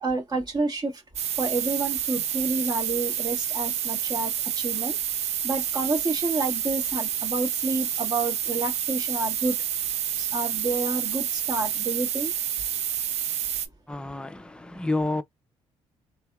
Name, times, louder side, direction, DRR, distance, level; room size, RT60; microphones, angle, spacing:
voice 1, 0.0-1.0 1.3-9.6 10.2-12.3, right 3 dB, 35° right, 1.1 m, -29 dB
sound 1, 1.2-13.7, right 9 dB, 70° right, 0.5 m, -29 dB
voice 2, 13.9-15.2, left 2 dB, 10° left, 0.5 m, -29 dB
3.3 x 2.8 x 2.2 m
cardioid pair, 85°, 12 cm